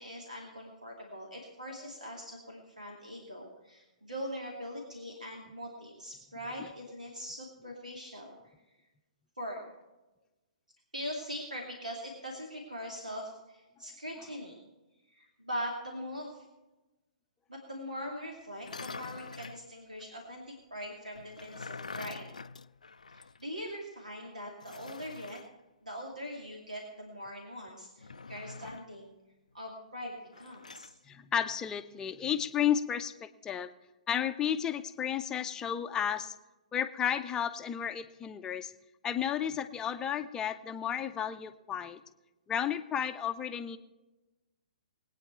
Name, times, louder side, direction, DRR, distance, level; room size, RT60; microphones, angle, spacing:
voice 1, 0.0-8.4 9.4-9.7 10.9-14.6 15.1-16.5 17.5-22.3 23.1-25.4 25.8-29.1 29.5-30.9, equal, 85° right, 0 dB, 2.5 m, -42 dB
sound 1, 18.5-19.6 21.1-23.4 23.7-23.8 24.6-25.5 28.0-29.0 30.3-30.9, left 4 dB, 75° left, 0.4 m, -45 dB
voice 2, 31.1-33.7 34.1-36.3 36.7-38.7 39.0-42.0 42.5-43.8, left 9 dB, 15° left, 9 dB, 0.6 m, -32 dB
21.0 x 9.2 x 4.5 m, 1.1 s
figure-of-eight pair, 120°, 4 cm